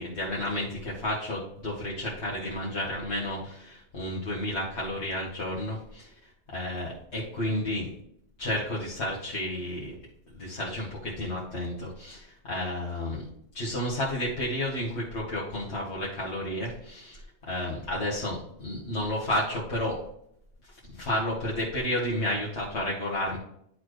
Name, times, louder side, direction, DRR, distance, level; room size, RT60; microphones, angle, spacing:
voice 1, 0.0-6.1 6.5-7.9 8.4-9.9 10.4-13.2 13.5-20.0 20.7-23.4, left 1 dB, 75° left, -5 dB, 1.8 m, -31 dB
10.5 x 4.2 x 3.2 m, 0.70 s
omnidirectional pair, 1.2 m